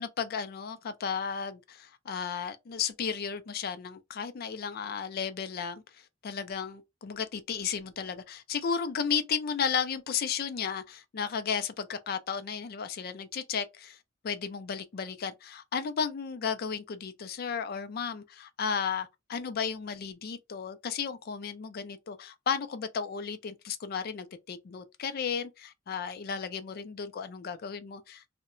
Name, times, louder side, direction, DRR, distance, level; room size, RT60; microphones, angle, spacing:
voice 1, 0.0-14.0 14.2-28.2, left 6 dB, 50° left, 0.4 m, -34 dB
2.8 x 2.1 x 2.4 m
head